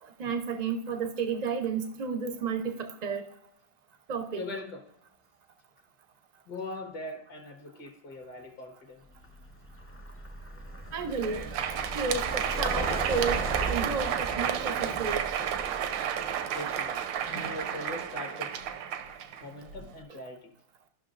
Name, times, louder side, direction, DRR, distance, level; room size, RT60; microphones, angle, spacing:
voice 1, 0.0-3.3 4.1-4.4 10.9-11.4 11.9-13.4 13.7-15.3, right 5 dB, 60° right, 0.4 m, -32 dB
voice 2, 4.4-4.9 6.5-9.0 16.5-18.6 19.4-20.5, left 2 dB, 65° left, 1.9 m, -41 dB
Vehicle, 9.1-17.9, right 1 dB, 15° left, 0.4 m, -38 dB
Crowd, 11.0-19.9, right 9 dB, 85° right, 1.4 m, -32 dB
14.5 x 6.0 x 2.5 m
omnidirectional pair, 2.0 m